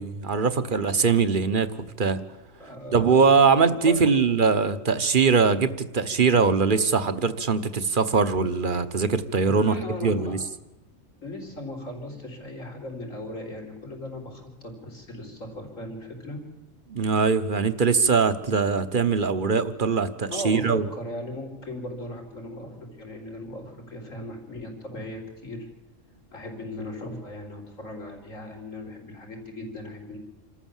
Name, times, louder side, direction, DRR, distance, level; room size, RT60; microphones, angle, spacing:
voice 1, 0.0-1.7 2.0-2.2 2.9-10.4 16.9-20.9, right 5 dB, 40° right, 13 dB, 1.2 m, -22 dB
voice 2, 2.5-3.4 3.6-4.2 9.4-10.4 11.2-16.4 20.3-25.7 26.3-30.2, left 1 dB, 85° left, 2 dB, 4.9 m, -37 dB
27.5 x 13.5 x 7.3 m, 1.0 s
omnidirectional pair, 1.3 m